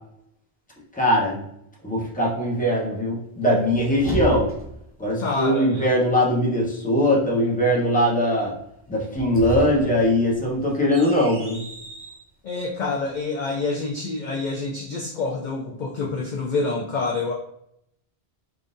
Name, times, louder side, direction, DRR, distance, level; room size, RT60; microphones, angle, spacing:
voice 1, 0.9-1.4 1.8-4.5 5.0-8.5 8.9-11.6, equal, 10° left, -4 dB, 0.8 m, -21 dB
sound 1, 3.4-4.9 9.0-12.2, equal, 15° right, 0.5 m, -33 dB
voice 2, 5.2-5.9 12.4-17.3, left 3 dB, 60° left, -1 dB, 0.5 m, -27 dB
3.6 x 2.6 x 2.5 m, 0.75 s
omnidirectional pair, 1.1 m